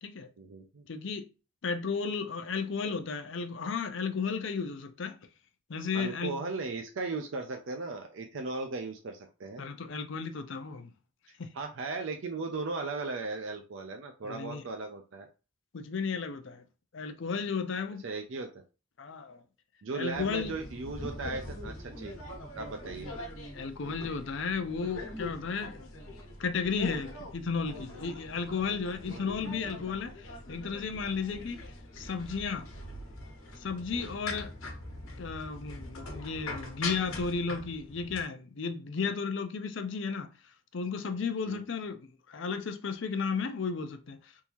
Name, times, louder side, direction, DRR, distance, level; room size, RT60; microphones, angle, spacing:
voice 1, 0.4-0.8 5.9-9.6 11.5-15.3 18.0-18.6 19.8-22.1 22.5-23.1 29.1-29.4 33.9-34.1 39.0-39.1 41.5-41.6, right 3 dB, 65° right, 0.5 m, -37 dB
voice 2, 0.9-1.2 1.6-5.2 5.7-6.4 9.6-10.9 11.4-11.5 14.2-14.6 15.7-16.6 16.9-18.0 19.0-19.4 19.9-20.5 23.5-25.8 26.4-32.7 33.6-34.5 35.2-40.3 40.7-42.0 42.3-44.3, left 5 dB, 60° left, 0.5 m, -34 dB
sound 1, 20.1-38.2, left 2 dB, 80° left, 1.1 m, -42 dB
3.6 x 2.7 x 3.0 m
head